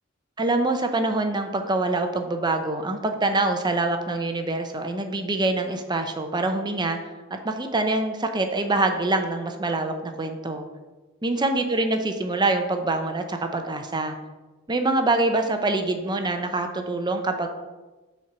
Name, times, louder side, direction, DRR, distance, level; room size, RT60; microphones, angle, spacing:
voice 1, 0.4-7.0 7.4-10.6 11.2-14.1 14.7-17.5, right 2 dB, 20° right, 6 dB, 0.7 m, -25 dB
7.2 x 4.5 x 6.1 m, 1.2 s
head